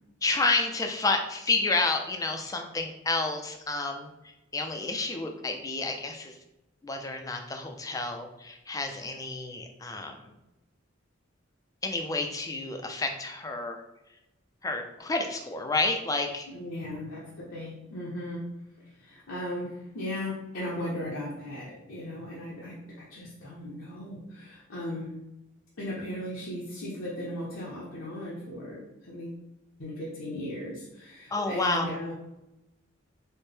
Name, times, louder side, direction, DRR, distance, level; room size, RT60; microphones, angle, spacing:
voice 1, 0.2-6.4 6.8-10.3 11.8-13.8 14.6-16.5 31.3-31.9, left 3 dB, 15° left, 4 dB, 0.4 m, -30 dB
voice 2, 16.5-18.4 19.0-25.1 25.8-29.4 29.8-32.1, left 1 dB, 80° left, -6 dB, 0.8 m, -37 dB
4.3 x 2.1 x 3.2 m, 0.91 s
head